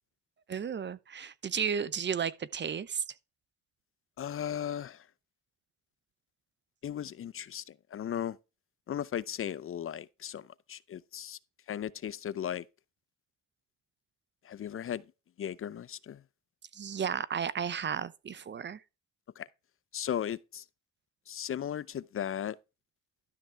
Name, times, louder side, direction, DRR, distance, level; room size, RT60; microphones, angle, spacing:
voice 1, 0.5-3.0 16.7-18.8, right 7 dB, 35° right, 0.7 m, -33 dB
voice 2, 4.2-5.1 6.8-8.4 8.9-11.4 11.7-12.7 14.4-15.0 15.4-16.2 19.4-19.5 19.9-20.6 21.3-22.6, left 9 dB, 45° left, 0.6 m, -36 dB
12.5 x 5.6 x 3.4 m
cardioid pair, 90°, 30 cm